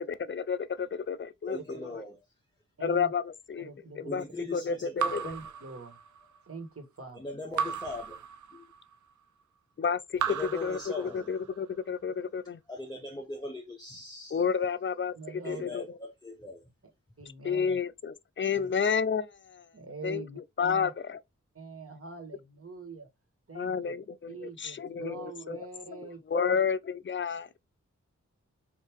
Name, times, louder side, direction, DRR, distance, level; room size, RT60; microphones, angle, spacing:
voice 1, 0.2-1.6 2.8-3.7 4.0-4.2 4.5-5.2 9.8-12.6 14.3-15.1 15.5-15.8 17.4-19.6 20.0-20.2 20.6-21.2 23.5-25.6 25.9-26.0 26.3-27.5, left 6 dB, 40° left, 0.4 m, -30 dB
voice 2, 1.5-2.2 4.0-5.3 7.1-8.2 8.5-8.6 10.3-11.3 12.2-12.3 12.7-14.4 15.4-16.7, left 2 dB, 15° left, 0.9 m, -40 dB
voice 3, 2.8-3.1 3.6-4.3 5.2-6.0 6.5-7.2 15.1-15.7 17.2-17.8 18.5-18.7 19.7-20.9 21.5-23.1 23.5-23.9 24.3-26.6, right 4 dB, 50° right, 1.6 m, -44 dB
Raindrop / Drip, 5.0-6.4 7.6-8.9 10.1-11.6, right 7 dB, 70° right, 0.5 m, -35 dB
3.6 x 2.7 x 4.5 m
cardioid pair, 55°, 31 cm